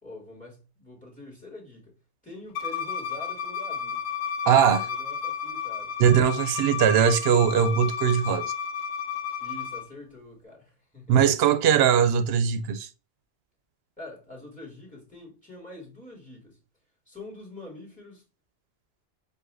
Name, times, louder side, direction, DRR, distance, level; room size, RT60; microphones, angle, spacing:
voice 1, 0.0-4.0 4.8-5.9 9.4-11.3 14.0-16.6 17.1-18.2, left 2 dB, 5° left, 2.6 m, -45 dB
Bowed string instrument, 2.6-9.8, left 7 dB, 80° left, 0.9 m, -32 dB
voice 2, 4.5-4.9 6.0-8.5 11.1-12.9, right 8 dB, 70° right, 0.8 m, -20 dB
7.9 x 2.7 x 2.5 m
omnidirectional pair, 1.2 m